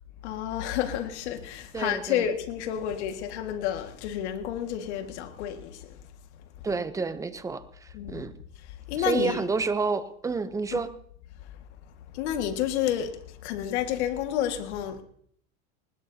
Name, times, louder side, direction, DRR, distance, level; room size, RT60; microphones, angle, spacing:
voice 1, 0.2-6.0 7.9-8.3 8.6-9.4 10.7-10.9 11.4-11.5 12.1-15.0, left 10 dB, 75° left, 1.9 m, -30 dB
voice 2, 1.7-2.3 6.6-8.3 9.0-10.9, right 4 dB, 10° right, 0.6 m, -29 dB
20.0 x 19.5 x 2.8 m
supercardioid pair, 145°, 34 cm